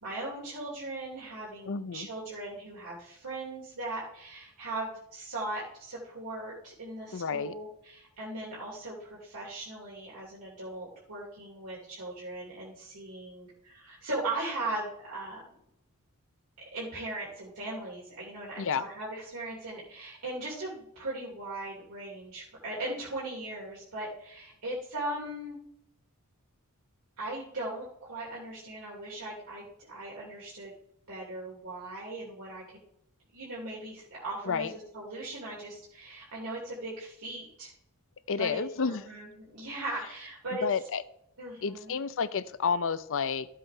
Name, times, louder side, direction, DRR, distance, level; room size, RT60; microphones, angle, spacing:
voice 1, 0.0-15.4 16.6-25.6 27.2-30.7 31.1-32.8 33.3-37.7 38.4-40.6 41.4-41.9, right 2 dB, 80° right, -6 dB, 3.0 m, -39 dB
voice 2, 1.7-2.1 7.1-7.5 18.6-18.8 34.5-34.7 38.3-39.0 40.6-41.0 41.6-43.5, left 5 dB, 65° left, 14 dB, 0.6 m, -30 dB
14.0 x 7.6 x 3.4 m, 0.76 s
head